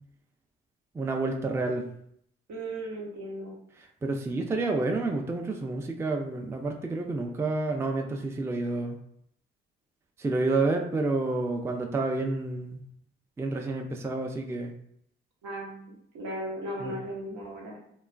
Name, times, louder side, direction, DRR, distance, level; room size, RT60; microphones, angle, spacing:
voice 1, 0.9-1.9 4.0-9.0 10.2-12.8 13.4-14.7 16.8-17.0, right 3 dB, 10° right, 3 dB, 0.3 m, -29 dB
voice 2, 2.5-3.5 15.4-17.8, right 1 dB, 80° right, -3 dB, 0.9 m, -37 dB
2.9 x 2.3 x 2.2 m, 0.70 s
hypercardioid pair, 45°, 29 cm